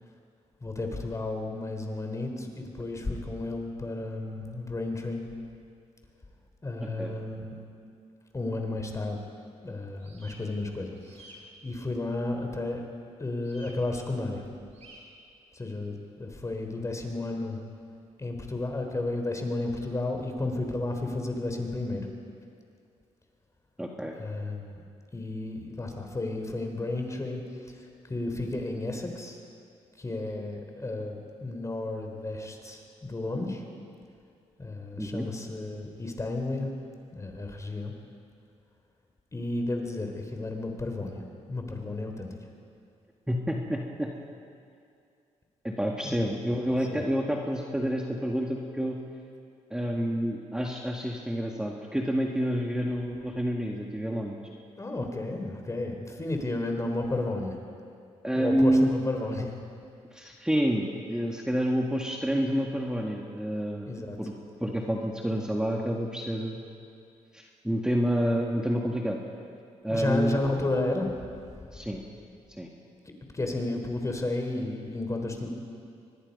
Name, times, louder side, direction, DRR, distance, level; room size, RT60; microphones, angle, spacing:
voice 1, 0.6-5.2 6.6-7.5 8.3-9.2 9.6-11.3 11.6-12.8 13.2-14.4 15.5-17.6 18.2-22.1 24.2-24.8 25.1-29.4 30.0-33.6 34.6-36.7 37.1-37.9 39.3-41.2 41.5-42.4 46.0-46.3 46.9-47.0 54.8-57.6 58.3-59.6 63.9-64.2 69.9-71.3 73.3-75.5, left 2 dB, 25° left, 3 dB, 3.7 m, -32 dB
voice 2, 6.8-7.1 23.8-24.1 35.0-35.3 43.3-44.1 45.6-49.0 49.7-54.4 58.2-58.9 60.1-64.3 64.6-66.6 67.3-69.2 69.8-70.4 71.7-72.0 72.6-72.7, equal, 5° right, 0 dB, 1.9 m, -28 dB
sound 1, 10.0-10.4 10.9-11.4 13.4-13.7 14.7-15.0, right 2 dB, 55° right, 7.1 m, -52 dB
24.0 x 20.0 x 5.4 m, 2.4 s
cardioid pair, 80°, 13 cm